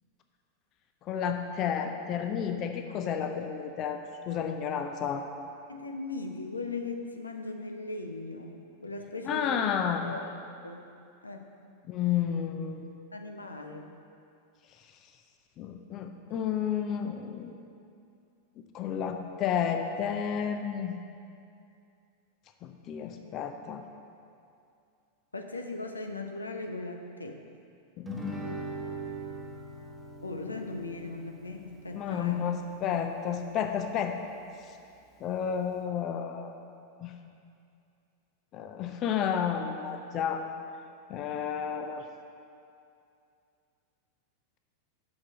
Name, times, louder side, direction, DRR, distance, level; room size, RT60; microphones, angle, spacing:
voice 1, 1.0-5.3 9.2-10.1 11.9-12.8 15.6-17.5 18.7-21.0 22.6-23.8 28.0-28.6 31.9-34.2 34.7-34.8 35.2-36.6 37.0-37.1 38.5-40.4 41.1-42.1, left 8 dB, 35° left, 6 dB, 0.6 m, -31 dB
voice 2, 5.7-9.7 10.0-10.3 10.6-10.9 11.2-11.5 13.1-13.9 25.3-27.4 30.2-32.4, left 3 dB, 80° left, 4 dB, 0.6 m, -38 dB
Guitar, 28.1-33.1, right 1 dB, 10° right, 1.1 m, -41 dB
7.2 x 6.0 x 6.2 m, 2.5 s
figure-of-eight pair, 90°, 0 cm